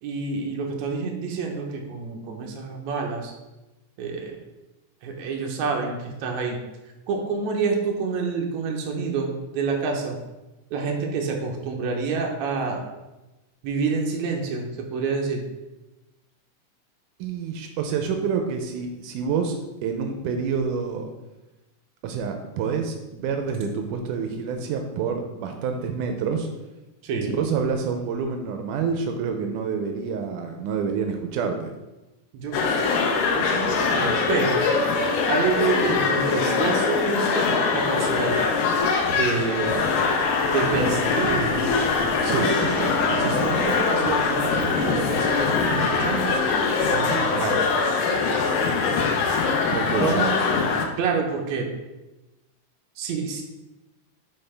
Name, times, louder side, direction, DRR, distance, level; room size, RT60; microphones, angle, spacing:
voice 1, 0.0-3.3 4.0-4.4 5.0-6.6 7.1-10.2 10.7-12.8 13.6-15.4 27.0-27.4 32.3-32.9 33.3-34.6 35.3-38.4 39.1-39.9 40.5-41.8 42.5-42.8 43.2-46.4 46.9-47.6 50.0-50.3 51.0-51.7 53.0-53.4, right 4 dB, 70° right, 1 dB, 2.2 m, -28 dB
voice 2, 17.2-21.1 22.0-26.5 27.4-31.7 42.2-42.5 49.7-50.2, right 6 dB, 85° right, 4 dB, 2.1 m, -27 dB
sound 1, 32.5-50.9, left 4 dB, 85° left, 2.3 m, -23 dB
sound 2, 39.9-46.4, right 2 dB, 30° right, 2.3 m, -37 dB
9.3 x 4.3 x 3.4 m, 1.1 s
omnidirectional pair, 3.5 m